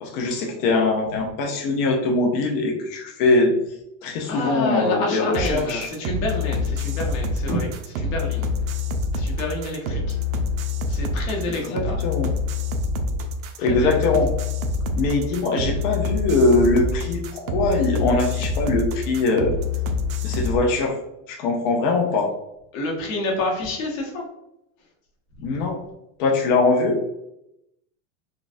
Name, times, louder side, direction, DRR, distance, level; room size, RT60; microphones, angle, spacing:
voice 1, 0.0-3.5 4.0-5.9 9.9-10.0 11.7-12.3 13.6-14.3 14.9-19.6 20.2-21.0 21.3-22.3 25.4-25.8 26.2-27.0, left 3 dB, 35° left, 1 dB, 0.4 m, -22 dB
voice 2, 4.2-8.5 9.1-10.2 10.9-12.0 13.6-14.1 22.7-24.2 25.4-25.5, left 2 dB, 70° left, -1 dB, 1.2 m, -28 dB
sound 1, 5.3-20.6, left 3 dB, 80° right, 0.6 m, -26 dB
4.0 x 2.2 x 2.5 m, 0.85 s
supercardioid pair, 155°, 41 cm